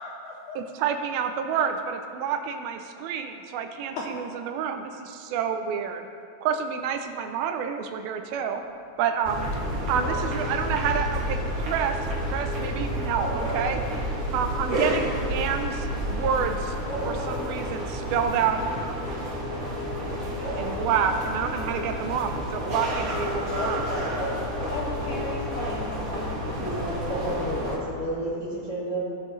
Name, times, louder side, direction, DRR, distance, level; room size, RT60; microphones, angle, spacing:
voice 1, 0.0-0.6 3.9-4.1 6.5-6.6 10.0-10.1 23.6-24.3 24.7-26.4, left 2 dB, 75° left, -2 dB, 1.9 m, -36 dB
voice 2, 0.6-6.1 6.4-8.6 9.0-9.5 9.9-12.0 12.3-13.8 14.3-16.8 17.0-18.9 20.2-23.9, right 7 dB, 80° right, 6 dB, 2.3 m, -28 dB
sound 1, 9.2-27.8, equal, 40° right, 1.9 m, -30 dB
sound 2, 10.0-10.5 12.9-14.3 14.7-14.8 16.4-16.5 16.8-18.0 19.0-19.1 20.4-21.1 24.1-25.0, right 1 dB, 45° left, 2.6 m, -35 dB
voice 3, 26.3-29.0, right 1 dB, 90° left, -9 dB, 0.6 m, -31 dB
17.5 x 6.5 x 3.2 m, 2.4 s
omnidirectional pair, 4.4 m